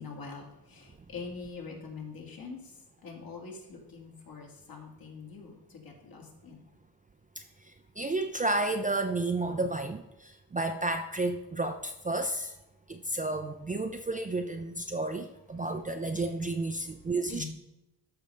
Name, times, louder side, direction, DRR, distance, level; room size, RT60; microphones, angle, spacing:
voice 1, 0.0-2.6 3.0-6.6 17.3-17.5, left 4 dB, 60° left, 0 dB, 2.0 m, -44 dB
voice 2, 8.0-10.0 10.5-12.5 12.9-17.4, right 2 dB, 20° right, 6 dB, 0.4 m, -31 dB
13.0 x 5.1 x 3.3 m, 0.93 s
wide cardioid pair, 135°, 40 cm